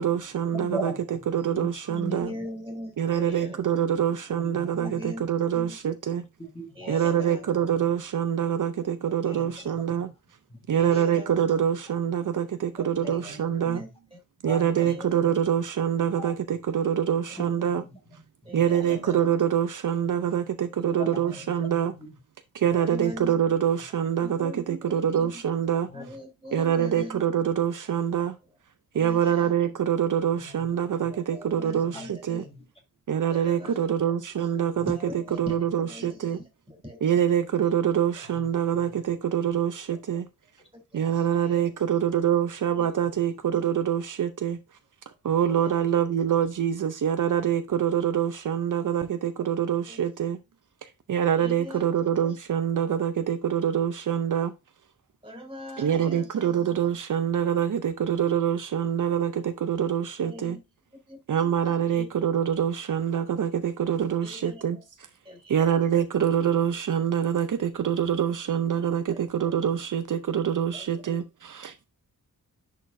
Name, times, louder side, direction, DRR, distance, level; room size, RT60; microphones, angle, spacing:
voice 1, 0.0-0.9 1.3-2.3 3.0-6.2 6.9-10.1 10.7-13.8 14.4-17.8 18.5-21.9 22.5-25.9 26.5-28.4 28.9-32.4 33.1-35.0 35.4-36.4 37.0-40.3 40.9-44.6 45.2-50.4 50.8-54.5 55.8-60.6 61.3-64.8 65.5-71.9, right 9 dB, 60° right, 0.6 m, -25 dB
voice 2, 0.5-2.5 4.3-5.0 6.4-7.2 7.6-7.7 8.4-8.5 9.3-10.1 10.5-11.5 13.0-13.9 14.4-15.0 16.1-16.3 17.4-18.8 20.9-22.2 25.9-26.2 26.4-26.5 30.3-30.7 31.0-31.1 31.8-32.1 32.4-32.7 34.7-34.9 38.2-39.0 40.6-40.7 41.0-41.2 43.0-43.1, right 1 dB, 15° left, 1.6 m, -41 dB
voice 3, 2.1-3.6 4.8-5.2 5.5-5.8 6.7-7.4 9.1-9.7 10.7-11.3 12.8-13.4 13.6-14.2 14.8-15.1 18.4-19.2 20.8-20.9 22.7-23.3 24.2-25.3 25.9-27.2 28.9-29.5 31.0-32.5 33.3-33.9 34.9-37.0 37.6-37.7 39.9-40.0 40.7-41.7 42.8-42.9 45.5-45.7 49.9-50.0 51.4-51.9 55.2-56.5 60.2-60.6 61.1-61.4 61.8-62.1 64.2-64.8 65.2-65.8 69.1-69.2 70.7-70.9, left 1 dB, 15° right, 2.9 m, -42 dB
10.5 x 4.2 x 2.6 m
wide cardioid pair, 175°, 35 cm